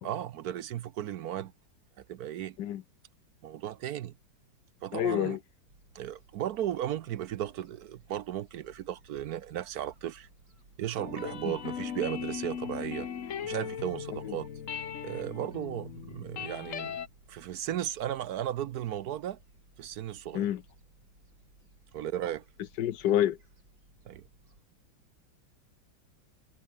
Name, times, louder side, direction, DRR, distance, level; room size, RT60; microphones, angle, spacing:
voice 1, 0.0-1.5 2.1-2.6 3.4-4.1 4.8-5.4 5.9-10.3 10.8-13.1 13.4-14.5 15.0-17.0 17.3-19.4 19.8-20.5 21.9-22.4 24.1-24.2, right 11 dB, 65° right, 1.0 m, -35 dB
voice 2, 4.9-5.4 11.4-11.6 14.2-14.4 20.3-20.6 22.8-23.4, left 11 dB, 65° left, 1.4 m, -28 dB
Gull seagull, 5.7-24.6, right 2 dB, 85° right, 7.8 m, -61 dB
Guitar song, 11.0-17.1, left 8 dB, 50° left, 1.3 m, -38 dB
omnidirectional pair, 2.1 m